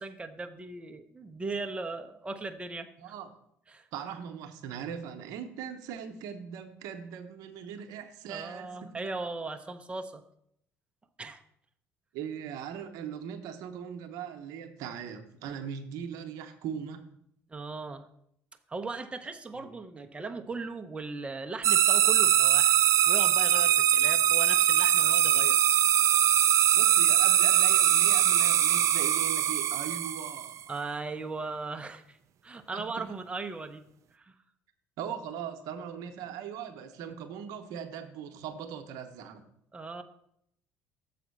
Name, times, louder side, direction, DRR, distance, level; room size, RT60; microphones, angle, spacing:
voice 1, 0.0-3.1 3.7-3.9 8.3-10.2 11.2-11.4 17.5-18.1 18.7-22.8 23.1-25.6 30.7-32.2 32.4-33.8 34.1-34.3 39.7-40.0, right 3 dB, 20° right, 6 dB, 0.7 m, -38 dB
voice 2, 3.0-3.3 3.9-9.0 12.1-17.0 19.5-19.7 26.7-30.7 32.7-33.1 35.0-39.4, right 8 dB, 75° right, 7 dB, 0.9 m, -40 dB
sound 1, 21.6-30.6, right 11 dB, 55° right, 0.5 m, -22 dB
7.1 x 4.2 x 6.7 m, 0.72 s
supercardioid pair, 75°, 6 cm